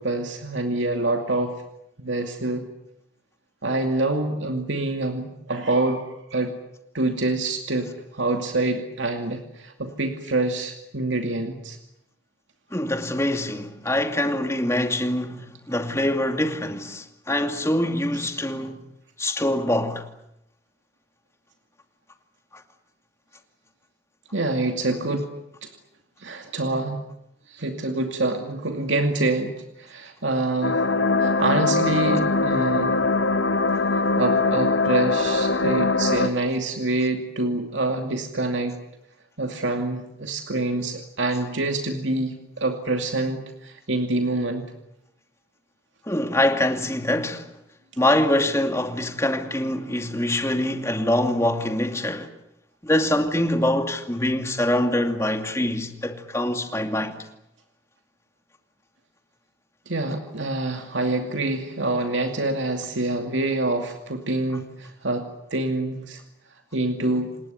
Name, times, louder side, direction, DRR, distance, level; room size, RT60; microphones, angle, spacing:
voice 1, 0.0-1.6 2.0-2.7 3.6-6.6 6.9-11.8 24.3-25.3 25.6-25.7 26.2-27.0 27.5-30.8 31.2-33.0 34.2-38.8 39.4-44.7 59.9-66.2 66.7-67.3, right 2 dB, 85° right, 2.5 m, -26 dB
voice 2, 12.7-18.8 19.2-20.0 46.1-47.5 48.0-52.3 52.8-57.2, left 1 dB, 15° left, 2.4 m, -24 dB
sound 1, 30.6-36.3, left 3 dB, 80° left, 1.4 m, -22 dB
28.5 x 19.5 x 9.5 m
head